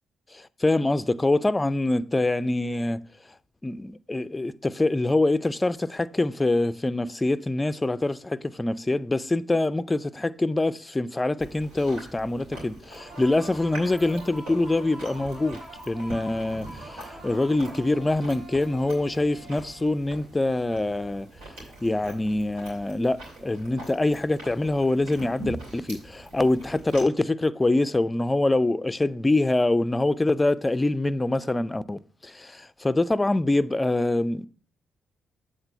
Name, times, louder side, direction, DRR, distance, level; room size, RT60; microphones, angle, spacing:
voice 1, 0.3-3.0 3.6-15.6 15.9-21.3 21.8-34.5, left 2 dB, 20° left, 0.4 m, -25 dB
Chewing mastication, 11.4-27.0, right 1 dB, 75° right, 2.6 m, -43 dB
sound 1, 13.0-20.5, right 2 dB, 55° right, 2.8 m, -45 dB
8.0 x 3.8 x 6.5 m
hypercardioid pair, 40°, 0 cm